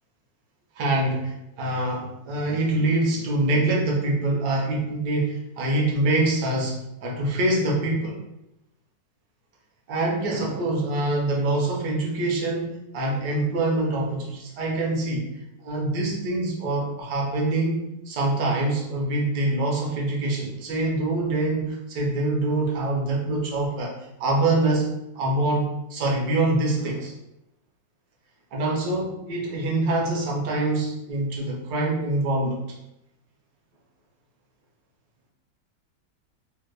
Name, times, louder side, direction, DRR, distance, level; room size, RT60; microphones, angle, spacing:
voice 1, 0.8-6.8 7.0-8.2 9.9-15.3 15.6-23.9 24.2-24.9 25.1-27.1 28.5-32.6, right 2 dB, 70° right, -2 dB, 1.3 m, -25 dB
3.5 x 2.1 x 3.2 m, 0.88 s
omnidirectional pair, 2.0 m